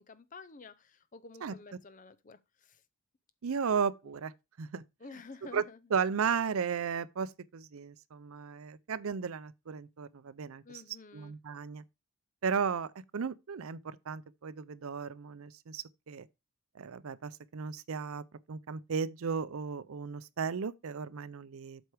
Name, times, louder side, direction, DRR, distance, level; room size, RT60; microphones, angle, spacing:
voice 1, 0.0-2.8 4.0-4.1 5.0-5.8 10.6-11.4, left 3 dB, 35° left, 0.5 m, -50 dB
voice 2, 3.4-4.3 4.6-4.8 5.5-5.6 5.9-10.6 11.1-11.8 12.4-16.3 16.8-21.8, right 6 dB, 75° right, 0.5 m, -35 dB
8.0 x 4.6 x 4.7 m
head